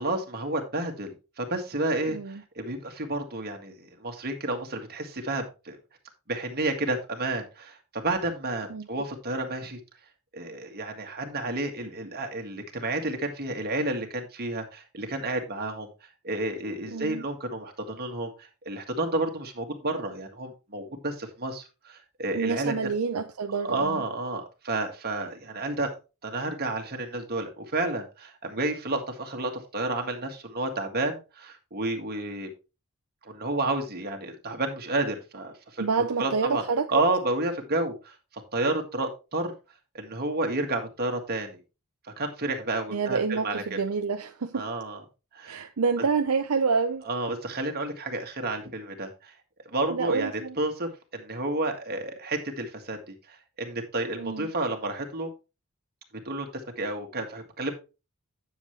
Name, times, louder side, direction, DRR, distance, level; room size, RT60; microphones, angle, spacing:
voice 1, 0.0-5.8 6.3-9.8 10.3-15.9 16.2-22.7 23.6-26.0 26.2-32.5 33.3-35.9 36.2-36.6 36.9-38.1 38.5-39.5 39.9-41.6 42.2-43.8 44.5-45.0 45.3-45.7 47.1-49.3 49.7-55.3 56.3-56.5 56.8-57.7, right 2 dB, 45° right, 1.8 m, -31 dB
voice 2, 2.1-2.4 8.7-8.9 16.9-17.2 22.3-24.0 35.8-36.9 42.9-44.7 45.4-47.0 49.9-50.6 54.2-54.5, right 5 dB, 70° right, 0.6 m, -28 dB
9.8 x 7.2 x 3.2 m
head